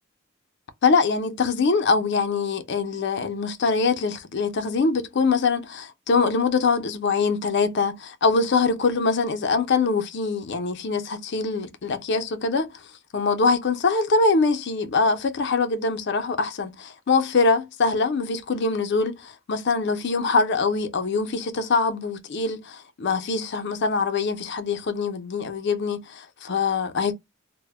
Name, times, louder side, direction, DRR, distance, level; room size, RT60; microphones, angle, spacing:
voice 1, 0.8-12.7 13.1-27.1, left 4 dB, 60° left, 0.5 m, -23 dB
2.1 x 2.0 x 3.2 m
head